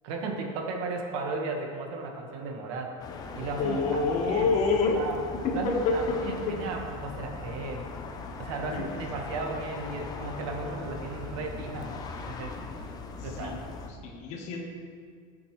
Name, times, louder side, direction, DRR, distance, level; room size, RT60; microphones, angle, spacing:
voice 1, 0.0-2.9 3.3-4.5 4.9-5.2 5.5-7.9 8.4-12.0 12.3-12.6 13.2-13.6, right 3 dB, 65° right, 1 dB, 1.8 m, -35 dB
sound 1, 3.0-13.9, left 4 dB, 20° left, 0.8 m, -39 dB
voice 2, 3.6-5.0 5.4-6.6 8.7-8.9 13.2-13.6 14.0-14.6, left 4 dB, 40° left, 1 dB, 1.6 m, -27 dB
19.5 x 7.1 x 3.3 m, 2.1 s
supercardioid pair, 160°, 17 cm